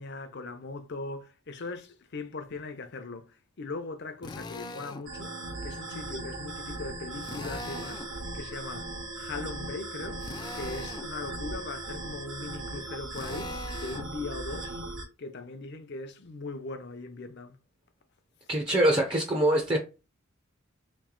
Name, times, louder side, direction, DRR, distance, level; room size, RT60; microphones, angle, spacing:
voice 1, 0.0-5.3 5.6-8.1 8.3-10.3 10.5-14.8 15.2-17.6, left 3 dB, 55° left, 0.7 m, -39 dB
Drill, 4.2-5.1 7.2-8.1 10.2-11.1 13.1-14.1, left 2 dB, 20° left, 0.3 m, -41 dB
sound 1, 5.0-15.0, right 2 dB, 70° right, 1.0 m, -38 dB
voice 2, 18.5-19.8, right 1 dB, 25° right, 0.6 m, -24 dB
3.2 x 3.1 x 3.7 m
head